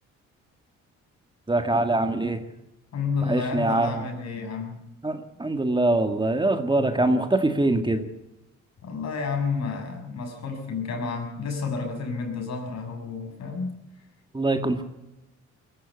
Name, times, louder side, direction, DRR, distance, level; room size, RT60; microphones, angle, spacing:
voice 1, 1.5-2.4 3.2-4.0 5.0-8.1 14.3-14.8, right 2 dB, 15° right, 7 dB, 1.9 m, -23 dB
voice 2, 2.9-4.8 8.8-13.8, left 4 dB, 60° left, 4 dB, 6.9 m, -30 dB
22.0 x 15.0 x 8.3 m, 0.94 s
cardioid pair, 90°, 30 cm